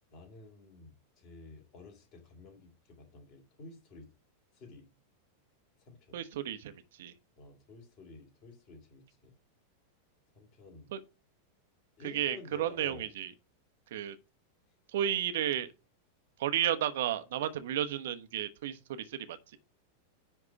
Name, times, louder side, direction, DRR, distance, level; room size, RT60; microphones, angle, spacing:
voice 1, 0.1-2.7 3.0-4.1 4.5-4.9 5.9-6.2 7.4-9.3 10.3-10.9 12.0-13.1, left 3 dB, 40° left, 3.2 m, -51 dB
voice 2, 6.1-7.1 10.9-11.0 12.0-13.3 13.9-14.2 14.9-15.7 16.4-19.6, right 11 dB, 55° right, 1.0 m, -33 dB
10.0 x 3.6 x 6.9 m
figure-of-eight pair, 90°, 0 cm